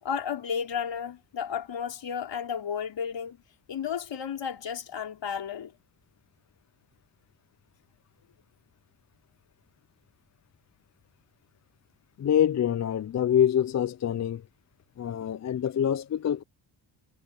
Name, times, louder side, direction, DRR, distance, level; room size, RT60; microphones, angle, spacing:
voice 1, 0.0-3.4 3.7-5.7, left 7 dB, 65° left, 4.5 m, -33 dB
voice 2, 12.2-14.4 15.0-16.4, left 9 dB, 40° left, 0.5 m, -25 dB
cardioid pair, 85°, 46 cm